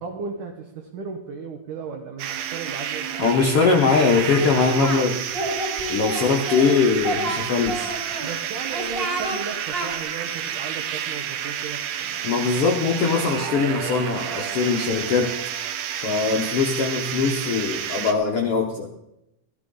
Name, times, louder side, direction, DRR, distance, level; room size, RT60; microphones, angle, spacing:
voice 1, 0.0-3.1 3.4-3.5 8.2-12.2 13.0-13.7, right 5 dB, 70° right, 1 dB, 2.4 m, -35 dB
sound 1, 2.2-18.1, right 9 dB, 85° right, 2.7 m, -30 dB
voice 2, 3.2-5.2 5.9-7.8 8.1-8.2 12.2-15.3 16.0-18.9, left 5 dB, 85° left, 0 dB, 1.2 m, -21 dB
Singing, 4.3-5.0 5.3-6.7 7.0-8.3 8.7-9.4 9.7-9.9, right 1 dB, 15° right, 2.9 m, -29 dB
15.0 x 12.5 x 3.8 m, 0.86 s
omnidirectional pair, 4.2 m